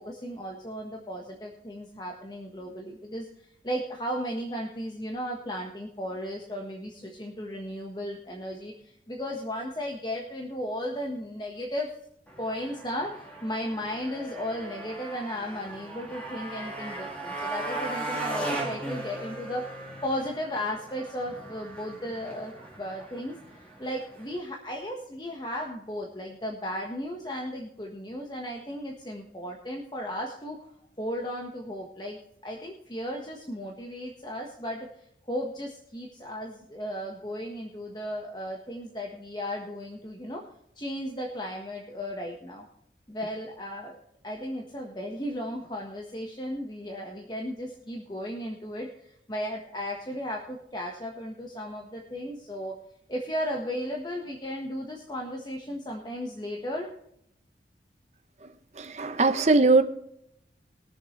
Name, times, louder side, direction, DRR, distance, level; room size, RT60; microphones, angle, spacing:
voice 1, 0.0-3.3 3.6-11.9 12.4-30.7 31.0-34.9 35.3-40.4 40.7-42.7 43.1-44.0 44.2-52.7 53.1-56.9, equal, 25° left, 0 dB, 1.4 m, -35 dB
Motorcycle, 12.3-24.4, right 2 dB, 10° left, 2.5 m, -38 dB
voice 2, 58.4-59.8, right 3 dB, 40° right, 8 dB, 0.8 m, -22 dB
21.5 x 7.3 x 3.2 m, 0.75 s
head